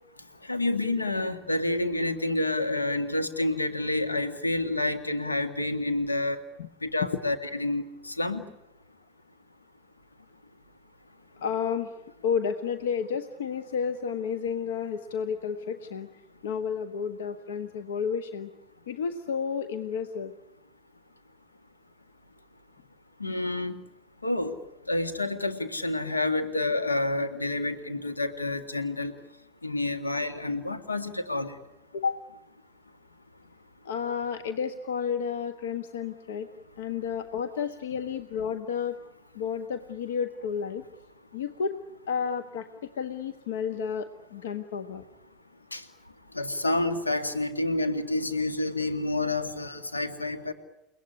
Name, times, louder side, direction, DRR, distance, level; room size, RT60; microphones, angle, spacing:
voice 1, 0.5-6.4 6.9-7.8 8.2-8.4 23.2-23.7 24.2-24.5 24.9-29.1 29.6-31.5 45.7-45.8 46.4-50.5, left 2 dB, 90° left, 8 dB, 2.1 m, -28 dB
voice 2, 11.4-11.9 12.2-16.1 16.4-18.5 18.9-20.3 31.9-32.2 33.8-36.5 36.8-39.0 39.3-40.8 41.3-41.8 42.1-45.0, left 6 dB, 70° left, 9 dB, 1.3 m, -31 dB
30.0 x 18.0 x 9.9 m, 0.91 s
figure-of-eight pair, 75°, 0 cm